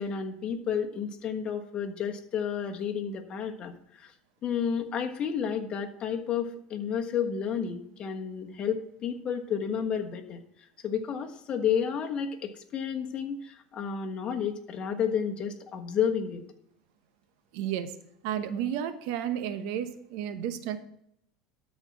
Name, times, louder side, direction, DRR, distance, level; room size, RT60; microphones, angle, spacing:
voice 1, 0.0-4.1 4.4-10.4 10.8-16.4, left 7 dB, 35° left, 4 dB, 1.4 m, -31 dB
voice 2, 17.5-18.0 18.2-20.8, right 9 dB, 70° right, 10 dB, 0.9 m, -32 dB
13.0 x 4.4 x 5.9 m, 0.73 s
supercardioid pair, 105°, 3 cm